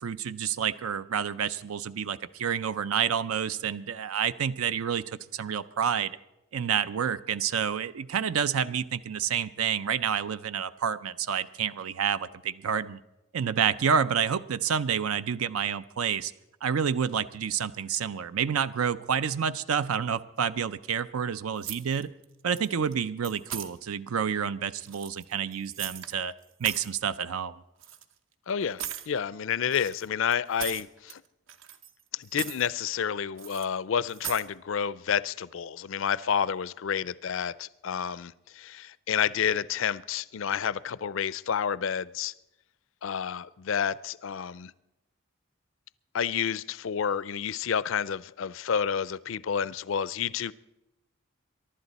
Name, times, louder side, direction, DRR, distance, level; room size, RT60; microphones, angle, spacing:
voice 1, 0.0-6.2 6.5-13.0 13.3-16.3 16.6-22.1 22.4-26.3 26.6-27.6, right 7 dB, 80° right, 14 dB, 0.5 m, -29 dB
sound 1, 21.6-22.2 22.5-22.9 23.2-23.7 24.8-26.1 26.4-27.0 27.8-28.0 28.8-29.1 29.7-31.2 31.5-32.0 32.3-32.7 33.4-33.7 34.1-34.5, right 10 dB, 65° right, 0.8 m, -38 dB
voice 2, 28.5-31.2 32.1-42.3 43.0-44.7 46.1-50.5, left 7 dB, 65° left, 19 dB, 0.4 m, -30 dB
23.0 x 11.5 x 4.1 m, 0.94 s
head